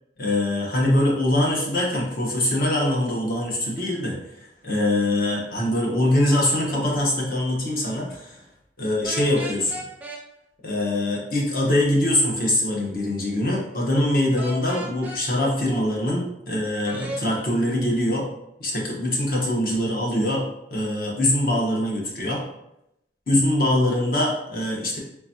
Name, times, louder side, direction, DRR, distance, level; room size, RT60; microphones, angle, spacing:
voice 1, 0.2-4.2 4.6-8.4 8.8-9.8 10.6-18.3 18.6-22.4 23.3-25.0, left 1 dB, 55° left, -2 dB, 1.0 m, -23 dB
sound 1, 9.0-10.2 14.4-15.2 16.8-17.2, equal, 10° right, 0.5 m, -35 dB
3.8 x 3.4 x 2.7 m, 0.84 s
head